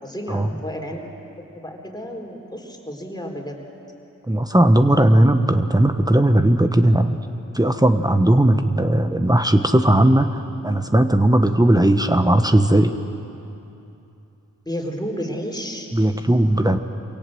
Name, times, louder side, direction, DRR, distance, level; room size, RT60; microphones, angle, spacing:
voice 1, 0.0-1.0 1.6-3.6 14.7-15.9 16.6-16.8, equal, 10° left, 0 dB, 4.1 m, -31 dB
voice 2, 4.3-7.2 7.5-13.0 15.9-16.8, right 1 dB, 10° right, 8 dB, 1.1 m, -17 dB
24.0 x 17.5 x 7.7 m, 2.8 s
cardioid pair, 45°, 33 cm